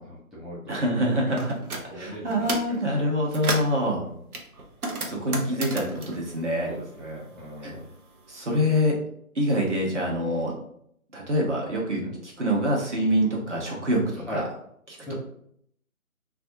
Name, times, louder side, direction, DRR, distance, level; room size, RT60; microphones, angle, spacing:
voice 1, 0.0-0.8 1.2-1.3 1.9-2.5 4.1-4.2 5.1-5.2 5.5-5.6 6.6-7.8 12.0-12.1 14.3-14.4 15.1-15.2, equal, ahead, -9 dB, 0.4 m, -39 dB
voice 2, 0.7-1.5 1.9-4.0 5.1-6.7 7.6-7.7 8.3-9.0 9.3-10.5 11.1-14.5 14.9-15.1, equal, 55° right, -2 dB, 0.9 m, -25 dB
sound 1, 1.4-1.9 2.3-2.8 3.1-3.8 4.3-7.3 7.5-8.7, right 2 dB, 80° right, 0.8 m, -33 dB
2.5 x 2.3 x 2.6 m, 0.69 s
figure-of-eight pair, 170°, 43 cm